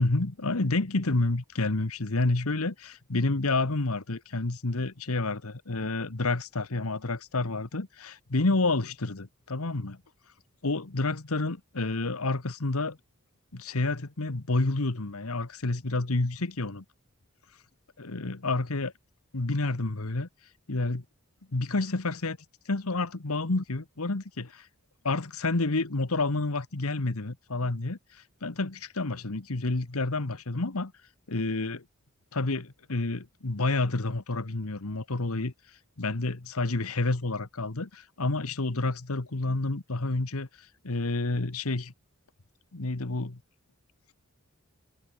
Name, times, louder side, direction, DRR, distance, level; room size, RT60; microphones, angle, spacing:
voice 1, 0.0-10.0 10.6-13.0 13.5-16.8 18.0-18.9 19.3-20.3 20.7-21.0 21.5-22.4 22.7-24.7 25.0-28.0 28.4-30.9 31.3-31.8 32.3-35.5 36.0-40.5 40.8-41.9 42.7-43.4, left 2 dB, 70° left, 1.4 m, -29 dB
head